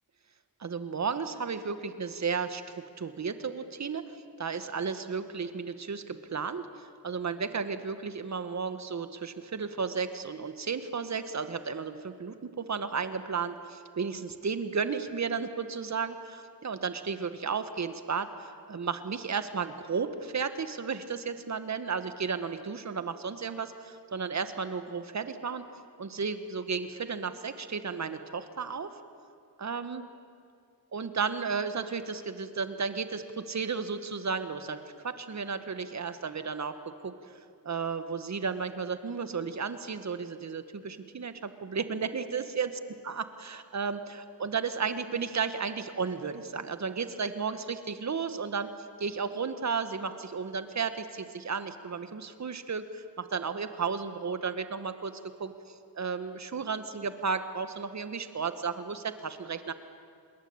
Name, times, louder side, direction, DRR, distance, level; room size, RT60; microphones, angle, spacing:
voice 1, 0.6-2.6 3.0-4.1 4.4-25.6 26.0-28.9 29.6-30.0 30.9-37.1 37.6-42.7 43.1-48.7 49.0-59.7, right 5 dB, 45° right, 10 dB, 1.8 m, -33 dB
27.0 x 22.0 x 8.9 m, 2.4 s
cardioid pair, 95°, 37 cm